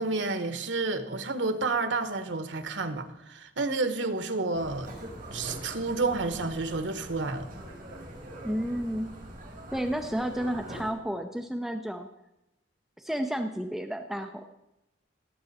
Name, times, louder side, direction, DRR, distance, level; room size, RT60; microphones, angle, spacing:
voice 1, 0.0-4.9 5.3-7.5, right 3 dB, 90° right, 1.1 m, -30 dB
sound 1, 4.5-10.9, right 1 dB, 50° right, 4.6 m, -43 dB
voice 2, 8.4-9.1 9.7-12.1 13.0-14.5, equal, ahead, 0.6 m, -31 dB
17.5 x 7.7 x 4.2 m
head